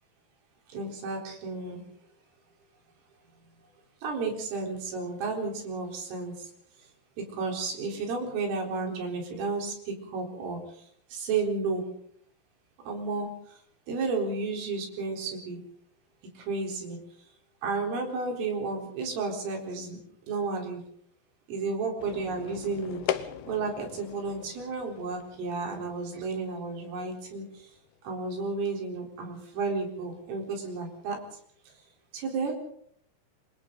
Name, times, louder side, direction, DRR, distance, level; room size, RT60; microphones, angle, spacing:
voice 1, 0.7-1.8 4.0-6.3 7.2-10.6 11.1-11.9 12.9-13.3 13.9-15.6 16.4-17.0 17.6-20.0 20.3-20.8 21.5-27.4 28.0-31.2 32.1-32.6, right 4 dB, 75° right, 1 dB, 6.8 m, -32 dB
sound 1, 22.0-28.6, left 10 dB, 75° left, 2.3 m, -40 dB
29.5 x 25.0 x 4.0 m, 0.67 s
omnidirectional pair, 5.9 m